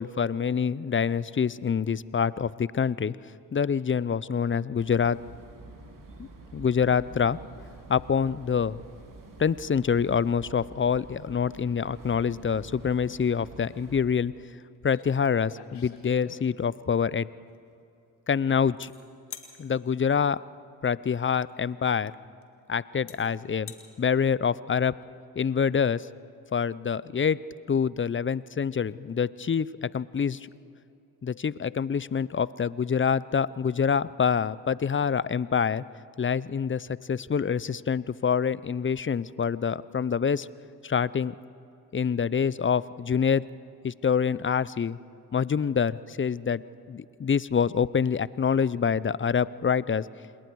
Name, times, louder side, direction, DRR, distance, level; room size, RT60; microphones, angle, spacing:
voice 1, 0.0-3.2 3.5-5.2 6.5-7.4 7.9-8.8 9.4-14.3 14.8-17.3 18.3-18.9 19.6-20.4 20.8-22.1 22.7-23.7 24.0-24.9 25.4-26.0 26.5-27.4 27.7-30.4 31.2-35.8 36.2-40.5 40.8-41.3 41.9-43.4 43.8-45.0 45.3-46.6 46.9-50.1, left 6 dB, 30° left, 19 dB, 0.6 m, -26 dB
sound 1, 4.8-14.0, right 2 dB, 50° right, 3.5 m, -48 dB
sound 2, 14.9-15.1 15.4-16.8 18.8-18.9 19.3-19.5 21.4-21.5 22.4-22.5 23.1-23.2 23.5-23.8, left 8 dB, 70° left, 2.1 m, -44 dB
27.5 x 21.0 x 4.7 m, 2.7 s
supercardioid pair, 40°, 41 cm